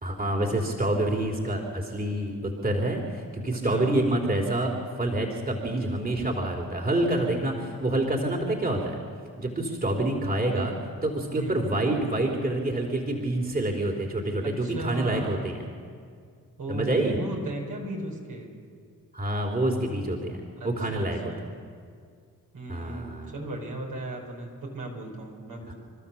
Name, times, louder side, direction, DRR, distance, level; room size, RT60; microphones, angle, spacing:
voice 1, 0.0-9.0 9.4-10.7 11.0-15.6 16.7-17.2 19.1-21.3 22.7-23.3 25.7-25.8, right 1 dB, 25° right, 1 dB, 3.5 m, -27 dB
voice 2, 3.5-4.0 11.3-11.8 14.4-15.5 16.6-18.5 20.6-21.5 22.5-25.7, right 2 dB, 65° right, 0 dB, 5.6 m, -36 dB
28.5 x 13.0 x 7.2 m, 2.2 s
supercardioid pair, 45°, 35 cm